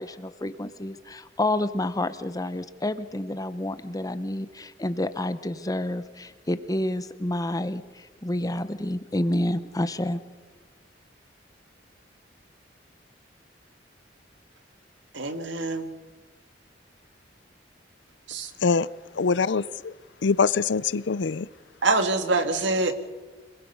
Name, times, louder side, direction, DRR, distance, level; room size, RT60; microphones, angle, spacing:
voice 1, 0.0-10.2, left 1 dB, 20° left, 0.9 m, -29 dB
voice 2, 15.1-15.9 18.3-18.5 21.8-22.9, right 3 dB, 75° right, 1.7 m, -25 dB
voice 3, 19.2-19.9 20.2-21.5, left 5 dB, 70° left, 0.5 m, -23 dB
26.0 x 21.0 x 5.5 m
head